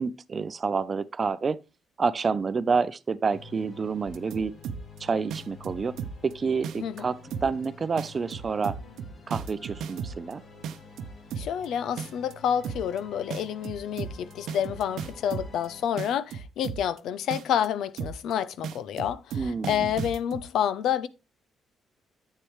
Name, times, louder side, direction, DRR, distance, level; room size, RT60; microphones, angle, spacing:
voice 1, 0.0-1.6 2.0-4.5 5.0-6.0 6.2-8.7 9.3-10.4 19.3-19.9, right 5 dB, 40° right, 0.6 m, -28 dB
sound 1, 3.3-15.9, left 4 dB, 50° left, 2.4 m, -49 dB
sound 2, 4.1-5.0 5.3-6.3 6.6-7.0 7.3-7.7 8.0-10.3 10.6-11.7 12.0-12.3 12.6-13.0 13.3-15.7 16.0-17.0 17.3-17.7 18.0-18.3 18.6-20.4, right 7 dB, 80° right, 0.7 m, -35 dB
voice 2, 11.4-21.1, left 9 dB, 80° left, 0.6 m, -29 dB
9.9 x 7.6 x 3.1 m
cardioid pair, 90°, 0 cm